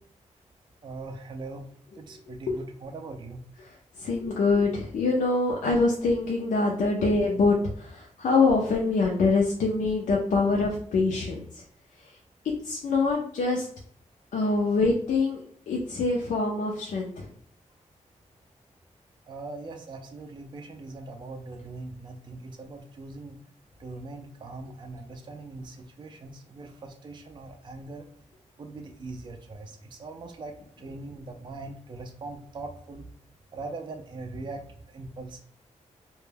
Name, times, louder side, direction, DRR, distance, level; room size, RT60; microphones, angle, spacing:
voice 1, 0.8-1.7 2.0-3.4 19.3-23.4 23.8-28.1 28.6-33.1 33.5-35.4, right 3 dB, 35° right, 4 dB, 0.3 m, -41 dB
voice 2, 2.3-2.6 4.0-11.6 12.6-13.7 14.3-15.4 15.7-17.3, left 3 dB, 85° left, -2 dB, 0.4 m, -25 dB
2.1 x 2.1 x 3.1 m, 0.62 s
wide cardioid pair, 120°, 13 cm